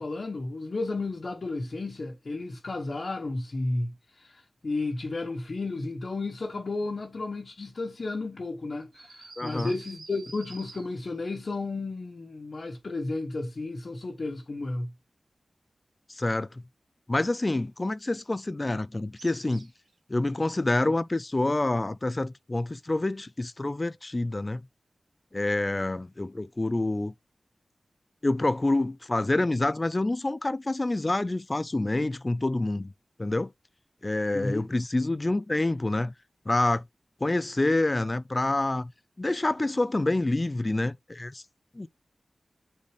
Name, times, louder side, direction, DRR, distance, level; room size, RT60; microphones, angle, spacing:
voice 1, 0.0-14.9 34.3-34.7, left 2 dB, 55° left, 1.3 m, -33 dB
sound 1, 8.9-11.2 19.2-19.9, right 3 dB, 85° right, 2.0 m, -48 dB
voice 2, 9.4-9.7 16.1-16.6 17.1-19.7 20.1-24.6 25.3-27.1 28.2-32.9 33.2-33.5 34.0-36.1 36.5-36.8 37.2-38.9 39.2-41.4 41.8-41.9, left 2 dB, 25° left, 0.3 m, -27 dB
8.2 x 4.2 x 3.3 m
wide cardioid pair, 105°, 0 cm